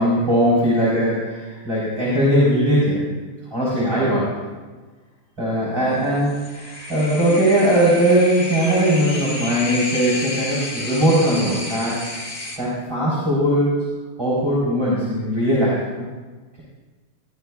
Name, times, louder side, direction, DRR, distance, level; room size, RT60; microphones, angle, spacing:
voice 1, 0.0-3.0 3.5-4.4 5.4-12.0 12.6-13.7 14.2-16.1, equal, 15° right, -8 dB, 4.1 m, -19 dB
sound 1, 6.2-12.6, left 2 dB, 30° left, 1.2 m, -31 dB
22.5 x 13.0 x 2.4 m, 1.3 s
omnidirectional pair, 2.4 m